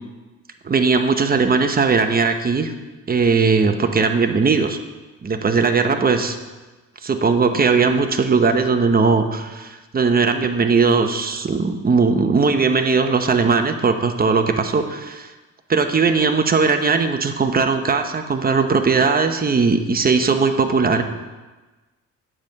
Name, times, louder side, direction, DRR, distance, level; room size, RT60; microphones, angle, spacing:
voice 1, 0.6-2.7 3.1-4.8 5.2-6.4 7.0-15.3 15.7-21.0, right 4 dB, 30° right, 7 dB, 0.9 m, -18 dB
8.8 x 7.4 x 5.3 m, 1.2 s
cardioid pair, 90°, 30 cm